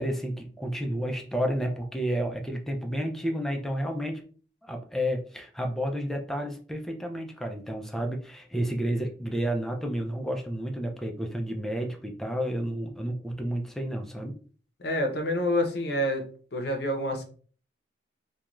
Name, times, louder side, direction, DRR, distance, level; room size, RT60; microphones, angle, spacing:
voice 1, 0.0-4.2 4.6-14.3, equal, ahead, 2 dB, 0.3 m, -31 dB
voice 2, 14.8-16.2 16.5-17.2, left 1 dB, 60° left, 3 dB, 0.6 m, -27 dB
2.4 x 2.2 x 2.9 m, 0.42 s
head